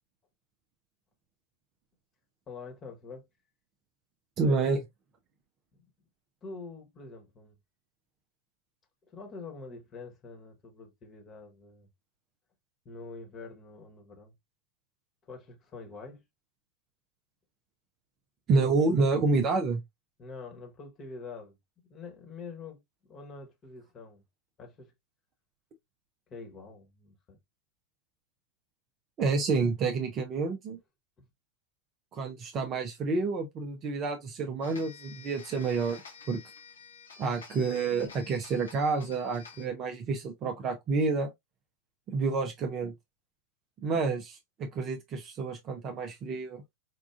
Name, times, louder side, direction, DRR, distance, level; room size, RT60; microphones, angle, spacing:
voice 1, 2.5-3.3 4.6-4.8 5.7-5.8 6.4-7.6 9.1-11.9 12.8-14.3 15.3-16.2 20.2-21.6 21.9-22.8 23.1-24.2 24.6-24.9 26.3-27.4 31.2-31.3, left 4 dB, 25° left, 1.2 m, -45 dB
voice 2, 4.4-4.8 18.5-19.8 29.2-30.8 32.1-36.0 36.3-36.4 37.2-41.3 42.1-42.9 43.8-46.6, right 4 dB, 30° right, 0.6 m, -29 dB
sound 1, 34.6-39.7, left 6 dB, 70° left, 1.1 m, -50 dB
4.5 x 2.4 x 2.4 m
figure-of-eight pair, 90°, 0 cm